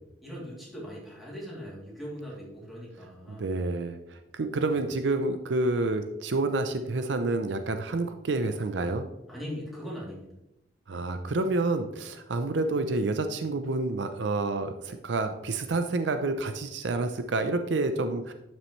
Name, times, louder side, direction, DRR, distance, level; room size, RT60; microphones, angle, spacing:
voice 1, 0.2-3.5 4.7-4.8 9.3-10.3 10.9-11.0, equal, ahead, -6 dB, 2.9 m, -40 dB
voice 2, 3.3-9.0 10.9-18.3, right 2 dB, 70° right, 8 dB, 0.6 m, -29 dB
11.0 x 6.3 x 3.2 m, 0.91 s
head